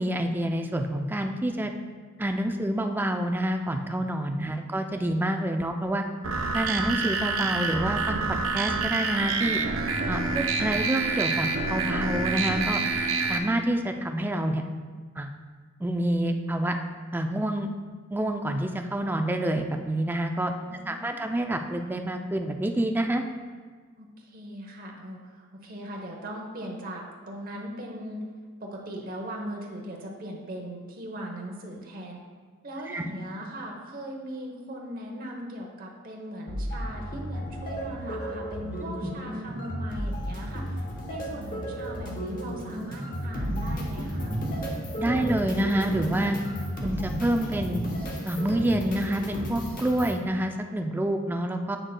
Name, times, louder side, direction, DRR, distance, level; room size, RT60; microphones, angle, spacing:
voice 1, 0.0-1.7 2.2-6.0 6.5-8.2 8.5-9.6 10.1-12.8 13.3-14.6 15.2-15.3 15.8-16.8 17.1-17.7 18.1-20.5 20.9-23.2 32.9-33.0 39.0-39.1 45.0-46.4 46.8-47.8 48.2-51.8, right 1 dB, 10° right, 5 dB, 0.3 m, -27 dB
sound 1, 6.2-13.4, right 4 dB, 75° right, 0.6 m, -27 dB
voice 2, 20.7-21.4 24.0-28.2 28.6-32.2 32.6-44.4, right 1 dB, 45° right, 0 dB, 0.9 m, -39 dB
sound 2, 36.5-50.2, equal, 45° left, 1.0 m, -33 dB
7.9 x 6.2 x 2.2 m, 1.5 s
head